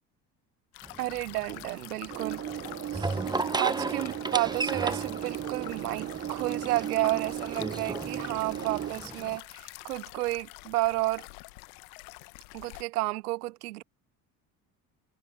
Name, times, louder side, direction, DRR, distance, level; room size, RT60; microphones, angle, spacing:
sound 1, 0.7-12.8, left 31 dB, 65° left, 1.3 m, -46 dB
sound 2, 0.8-9.4, right 3 dB, 10° right, 1.2 m, -36 dB
voice 1, 1.0-2.4 2.9-3.2 3.5-11.2 12.5-13.8, right 19 dB, 75° right, 0.5 m, -31 dB
sound 3, 2.1-8.9, right 11 dB, 30° right, 0.6 m, -36 dB
figure-of-eight pair, 55°, 46 cm